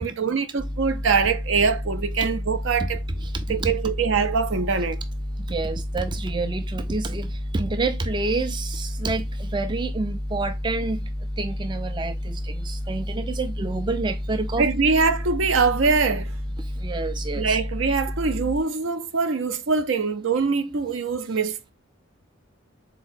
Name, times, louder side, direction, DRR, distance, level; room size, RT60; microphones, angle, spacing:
voice 1, 0.0-3.0 3.5-5.0 14.6-16.3 17.4-21.7, right 5 dB, 75° right, 0.6 m, -23 dB
sound 1, 0.6-18.6, left 1 dB, 10° left, 0.7 m, -31 dB
voice 2, 3.2-3.7 5.5-11.1 11.4-14.7 16.6-17.6, right 3 dB, 25° right, 0.3 m, -29 dB
4.0 x 2.9 x 4.4 m
head